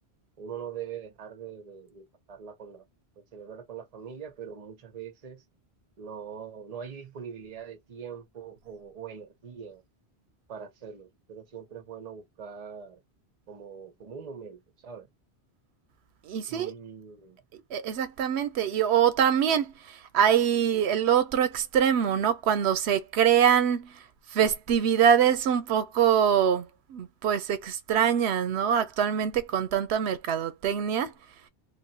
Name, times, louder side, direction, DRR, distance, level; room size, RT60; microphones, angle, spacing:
voice 1, 0.4-2.9 3.2-5.4 6.0-9.8 10.5-13.0 13.5-15.1 16.5-17.4, right 7 dB, 40° right, 0.8 m, -42 dB
voice 2, 16.2-16.7 17.5-31.1, right 8 dB, 90° right, 0.9 m, -24 dB
3.2 x 2.1 x 2.7 m
omnidirectional pair, 1.1 m